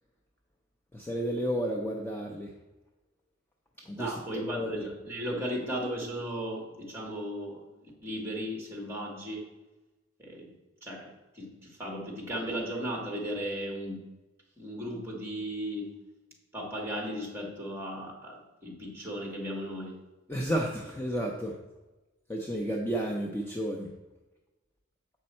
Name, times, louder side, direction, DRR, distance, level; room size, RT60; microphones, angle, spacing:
voice 1, 0.9-2.5 3.9-4.9 20.3-21.5 22.3-23.9, equal, 10° left, -1 dB, 0.5 m, -32 dB
voice 2, 3.9-9.5 10.2-10.5 10.8-14.1 14.6-16.0 16.5-20.0, equal, 10° right, -1 dB, 1.6 m, -36 dB
7.7 x 5.3 x 4.3 m, 1.1 s
head